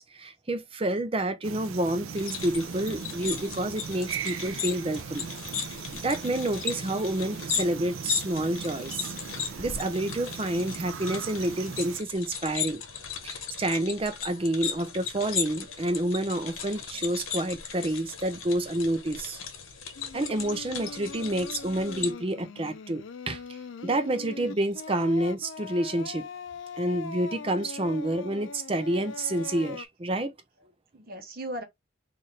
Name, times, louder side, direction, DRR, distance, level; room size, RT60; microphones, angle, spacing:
voice 1, 0.0-5.3 5.9-9.1 9.6-12.8 13.2-19.4 20.1-26.3 26.8-30.3, right 1 dB, 25° right, 0.5 m, -29 dB
sound 1, 1.4-12.0, right 6 dB, 80° right, 0.5 m, -39 dB
sound 2, 2.1-22.1, left 7 dB, 80° left, 1.0 m, -37 dB
voice 2, 15.6-16.1 16.9-17.5 17.8-17.9 20.7-21.2 21.5-21.7 30.6-31.6, right 1 dB, 45° right, 0.8 m, -43 dB
Singing, 19.9-29.9, left 4 dB, 65° left, 0.5 m, -41 dB
4.1 x 2.5 x 3.2 m
head